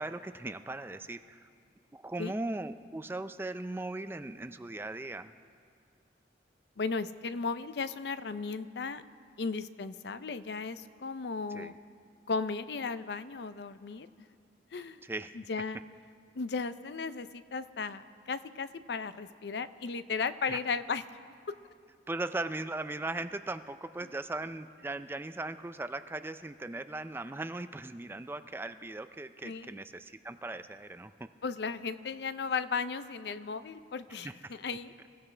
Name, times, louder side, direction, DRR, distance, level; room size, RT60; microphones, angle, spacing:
voice 1, 0.0-1.5 1.9-5.3 11.5-11.7 15.0-15.4 20.5-20.6 22.1-31.1 34.2-34.5, right 2 dB, 10° right, 11 dB, 0.3 m, -38 dB
voice 2, 6.8-9.0 9.4-11.7 12.3-14.3 14.7-15.0 15.3-15.8 16.4-21.0 29.4-29.8 31.4-34.9, left 4 dB, 65° left, 13 dB, 0.5 m, -35 dB
26.5 x 15.0 x 3.3 m, 2.2 s
head